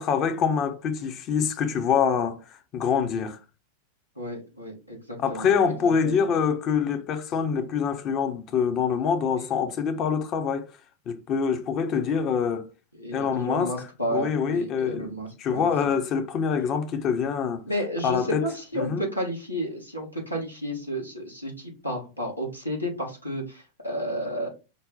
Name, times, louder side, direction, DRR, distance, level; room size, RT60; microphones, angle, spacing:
voice 1, 0.0-3.4 5.2-10.7 11.1-12.7 13.1-15.1 15.4-17.6 18.0-18.5 18.8-19.1, left 6 dB, 35° left, 0.6 m, -25 dB
voice 2, 4.2-5.5 6.0-6.2 13.0-15.7 17.7-24.5, equal, 85° left, 1.3 m, -32 dB
5.3 x 2.1 x 3.9 m
figure-of-eight pair, 90°, 0 cm